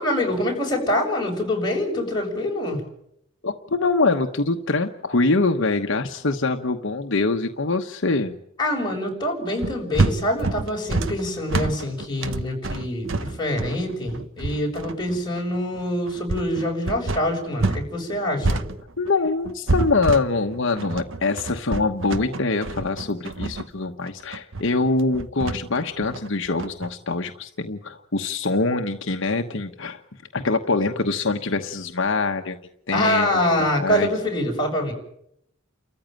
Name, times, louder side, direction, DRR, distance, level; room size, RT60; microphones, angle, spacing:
voice 1, 0.0-2.8 8.6-18.6 32.9-34.9, left 1 dB, 20° left, 0 dB, 6.9 m, -25 dB
voice 2, 3.4-8.4 19.0-30.0 30.3-32.6 32.9-33.3 33.6-34.1, left 3 dB, 65° left, 5 dB, 1.2 m, -24 dB
sound 1, 9.6-17.9 18.1-26.9, right 2 dB, 65° right, 1.2 m, -27 dB
30.0 x 14.5 x 9.1 m, 0.76 s
head